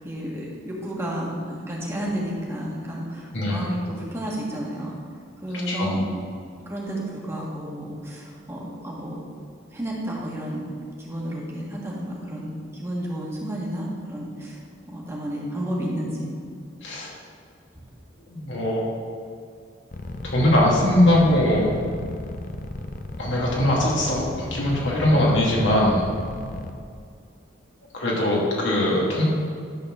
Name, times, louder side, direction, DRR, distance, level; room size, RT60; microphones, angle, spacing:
voice 1, 0.0-4.9 5.4-6.0 6.6-9.2 9.7-10.7 11.0-14.6 14.9-16.3, right 1 dB, 15° right, -4 dB, 1.5 m, -31 dB
voice 2, 3.3-3.7 5.7-6.0 16.8-17.1 18.3-18.9 20.2-21.7 23.2-24.2 24.5-26.0 27.9-29.2, left 1 dB, 70° left, -4 dB, 2.3 m, -21 dB
sound 1, 19.9-26.7, left 2 dB, 40° left, 0.5 m, -34 dB
11.5 x 4.2 x 6.6 m, 2.3 s
head